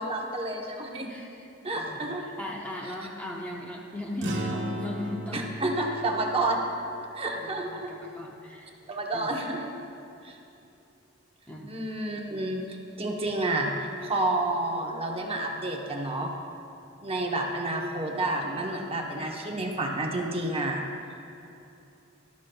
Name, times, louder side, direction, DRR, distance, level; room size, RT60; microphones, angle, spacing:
voice 1, 0.0-1.1 1.6-2.3 5.3-6.6 7.1-7.9 8.9-9.7 10.2-10.4 11.7-16.3 17.0-20.8, right 2 dB, 30° right, 1 dB, 0.9 m, -30 dB
voice 2, 1.1-1.5 1.7-2.1 2.4-5.5 7.3-8.7 9.1-9.4 11.5-11.8, left 1 dB, 10° left, -2 dB, 0.7 m, -38 dB
sound 1, 4.2-8.9, right 1 dB, 60° right, 1.2 m, -38 dB
13.0 x 12.5 x 2.3 m, 2.7 s
head